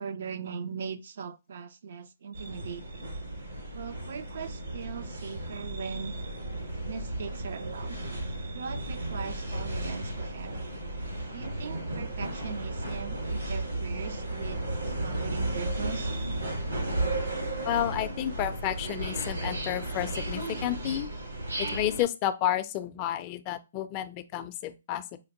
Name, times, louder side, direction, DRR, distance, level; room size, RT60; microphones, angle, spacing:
voice 1, 0.0-3.1 3.7-6.1 6.9-8.0 8.5-10.7 11.3-16.1, right 6 dB, 60° right, 0.4 m, -40 dB
London Underground, 2.3-22.0, right 1 dB, 85° right, 1.4 m, -34 dB
voice 2, 17.7-21.1 21.6-25.2, left 12 dB, 30° left, 0.3 m, -31 dB
5.0 x 2.1 x 2.8 m
hypercardioid pair, 145°, 0 cm